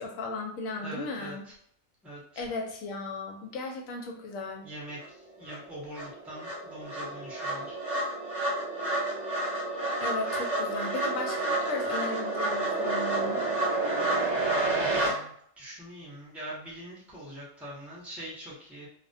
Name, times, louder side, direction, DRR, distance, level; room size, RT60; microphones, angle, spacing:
voice 1, 0.0-1.4 2.4-4.7 10.0-13.5, left 2 dB, 85° left, 1 dB, 1.0 m, -36 dB
voice 2, 0.8-1.5 2.0-2.4 4.6-7.8 14.4-18.9, right 1 dB, ahead, -6 dB, 0.4 m, -43 dB
sound 1, 5.0-5.1 5.5-15.1, right 2 dB, 45° right, 0.6 m, -29 dB
2.3 x 2.1 x 2.5 m, 0.67 s
omnidirectional pair, 1.4 m